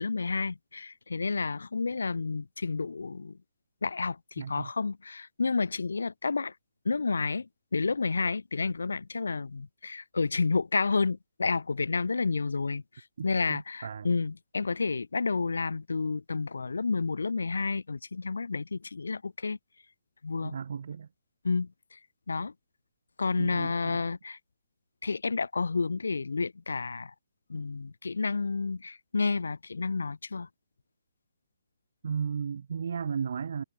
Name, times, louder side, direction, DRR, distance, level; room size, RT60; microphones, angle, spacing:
voice 1, 0.0-3.4 3.8-6.5 6.8-19.6 20.2-20.6 21.4-22.0 22.3-22.5 23.2-24.4 25.0-27.1 27.5-30.5, left 4 dB, 70° left, 2.6 m, -30 dB
voice 2, 4.4-4.7 13.2-14.2 20.4-21.1 23.4-24.0 32.0-33.6, right 6 dB, 55° right, 3.9 m, -35 dB
figure-of-eight pair, 135°, 0 cm